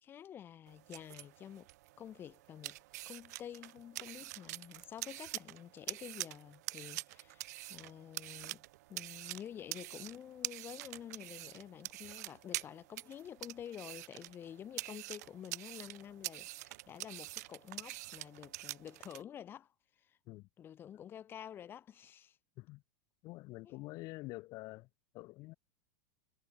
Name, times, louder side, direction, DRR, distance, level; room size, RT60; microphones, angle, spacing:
voice 1, 0.0-1.7 2.0-2.8 3.1-19.7 20.0-20.2 20.6-22.4 23.6-23.7, left 9 dB, 25° left, 2.5 m, -49 dB
sound 1, 0.7-19.2, right 19 dB, 65° right, 0.4 m, -46 dB
voice 2, 23.2-24.9 25.1-25.5, left 21 dB, 40° left, 2.6 m, -47 dB
supercardioid pair, 155°, 10 cm